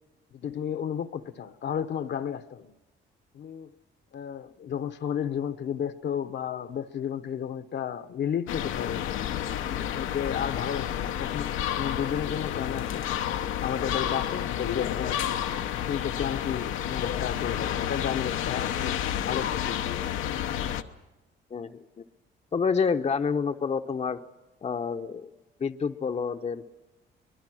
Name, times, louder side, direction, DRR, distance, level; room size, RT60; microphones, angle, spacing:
voice 1, 0.3-2.7 3.3-3.7 4.1-9.0 9.6-13.1 13.6-15.2 15.9-19.0 19.2-19.8, left 8 dB, 60° left, 1.0 m, -32 dB
sound 1, 8.5-20.8, left 10 dB, 90° left, 0.9 m, -30 dB
voice 2, 21.5-22.0 22.5-24.2 24.6-25.3 25.6-26.6, left 5 dB, 35° left, 0.8 m, -28 dB
24.0 x 20.5 x 6.3 m
cardioid pair, 90°, 20 cm